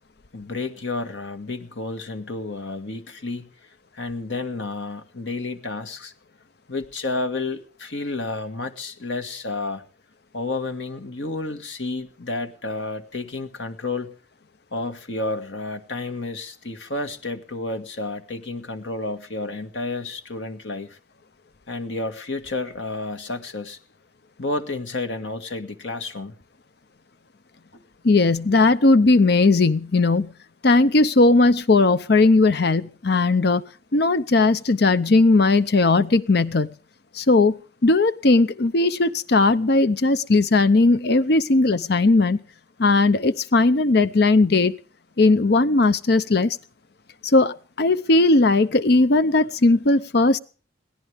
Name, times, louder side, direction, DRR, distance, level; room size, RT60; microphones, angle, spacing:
voice 1, 0.3-3.5 3.9-6.1 6.7-9.8 10.3-14.1 14.7-21.0 21.7-23.8 24.4-26.3, left 2 dB, 80° left, 6 dB, 1.9 m, -31 dB
voice 2, 28.0-30.3 30.6-33.6 33.9-36.7 37.1-42.4 42.8-44.8 45.2-46.6 47.2-50.4, left 3 dB, 55° left, 14 dB, 0.7 m, -18 dB
22.5 x 17.0 x 3.5 m, 0.38 s
head